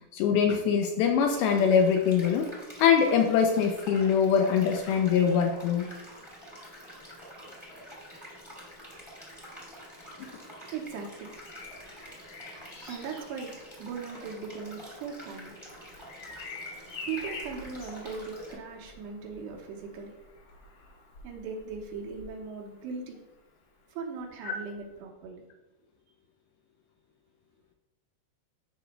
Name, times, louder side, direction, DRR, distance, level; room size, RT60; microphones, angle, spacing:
voice 1, 0.1-2.5 2.8-5.9 24.5-24.6, left 7 dB, 80° left, 4 dB, 2.2 m, -23 dB
sound 1, 1.2-18.5, equal, 15° left, 1.1 m, -47 dB
voice 2, 9.9-20.2 21.2-23.2 23.9-25.4, right 5 dB, 90° right, 0 dB, 3.1 m, -40 dB
Bird vocalization bird call bird song, 11.2-23.0 24.7-24.9, left 3 dB, 60° left, 2.5 m, -47 dB
12.5 x 5.1 x 2.2 m, 1.1 s
omnidirectional pair, 4.8 m